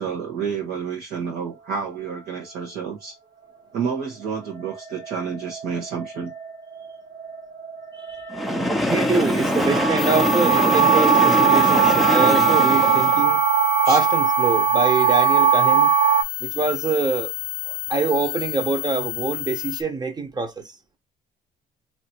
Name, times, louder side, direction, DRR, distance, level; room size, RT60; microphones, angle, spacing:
voice 1, 0.0-3.2 3.7-6.3 13.8-14.0, right 6 dB, 70° right, 1.3 m, -29 dB
sound 1, 3.4-16.2, right 7 dB, 55° right, 1.6 m, -21 dB
Train, 8.3-13.3, left 1 dB, ahead, 0.6 m, -23 dB
voice 2, 8.9-13.4 13.9-15.9 16.4-17.3 17.7-20.8, right 3 dB, 25° right, 1.1 m, -25 dB
sound 2, 10.0-19.8, left 17 dB, 65° left, 0.4 m, -31 dB
2.9 x 2.8 x 4.4 m
cardioid pair, 110°, 17 cm